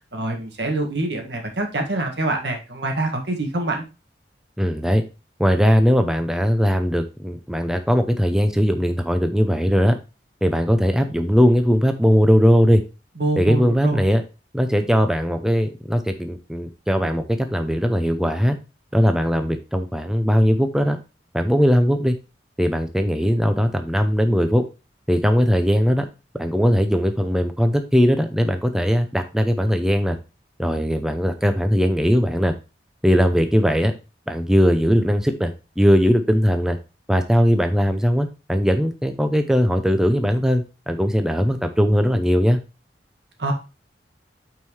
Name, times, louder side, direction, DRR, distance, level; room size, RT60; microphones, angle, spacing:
voice 1, 0.1-3.9 13.2-14.0 43.4-43.5, right 2 dB, 75° right, 3 dB, 1.8 m, -25 dB
voice 2, 4.6-5.0 5.4-9.9 10.4-12.8 13.4-14.2 14.5-18.6 18.9-21.0 21.3-22.2 22.6-24.6 25.1-26.1 26.4-30.2 30.6-32.5 33.0-33.9 34.3-36.8 37.1-42.6, equal, 5° right, 7 dB, 0.5 m, -19 dB
8.9 x 4.6 x 3.1 m, 0.29 s
head